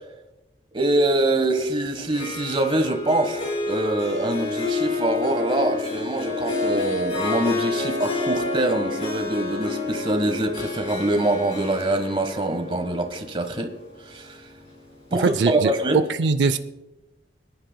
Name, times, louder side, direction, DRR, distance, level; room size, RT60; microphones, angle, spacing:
voice 1, 0.7-3.4 3.7-13.7 14.0-14.4 15.1-16.0, right 1 dB, 30° right, 6 dB, 1.3 m, -24 dB
Harp, 2.0-14.9, left 3 dB, 35° left, 4.5 m, -29 dB
voice 2, 15.2-15.7 16.2-16.6, right 4 dB, 75° right, 10 dB, 0.5 m, -21 dB
25.5 x 11.0 x 2.2 m, 1.0 s
head